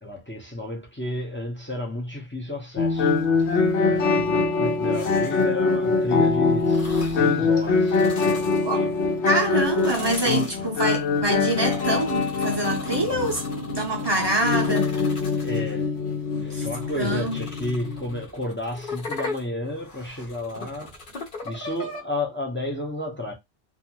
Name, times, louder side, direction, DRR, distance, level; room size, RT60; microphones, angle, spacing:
voice 1, 0.0-3.1 3.9-9.1 15.4-16.0 16.3-21.0 21.4-23.3, left 1 dB, 15° left, 0.5 m, -32 dB
sound 1, 2.8-18.2, left 4 dB, 75° left, 0.9 m, -24 dB
sound 2, 4.9-5.6 6.6-7.3 7.8-9.0 9.5-15.8 16.3-22.0, left 2 dB, 50° left, 0.9 m, -39 dB
voice 2, 9.2-15.0 16.3-16.7 17.0-17.4, right 1 dB, 30° right, 0.5 m, -26 dB
2.6 x 2.5 x 2.8 m
omnidirectional pair, 1.2 m